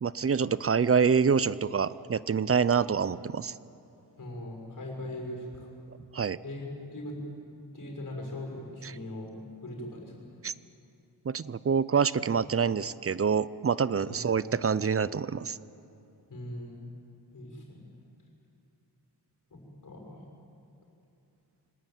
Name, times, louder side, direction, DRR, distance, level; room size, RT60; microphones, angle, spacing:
voice 1, 0.0-3.5 6.1-6.4 8.8-8.9 10.4-10.5 11.3-15.6, right 6 dB, 35° right, 17 dB, 0.5 m, -26 dB
voice 2, 4.2-5.7 6.4-7.2 7.7-9.3 9.6-10.1 14.0-14.2 16.3-16.8 17.3-17.8 19.5-20.2, left 1 dB, 50° left, 1 dB, 6.3 m, -40 dB
25.0 x 19.0 x 9.3 m, 2.7 s
wide cardioid pair, 135°, 41 cm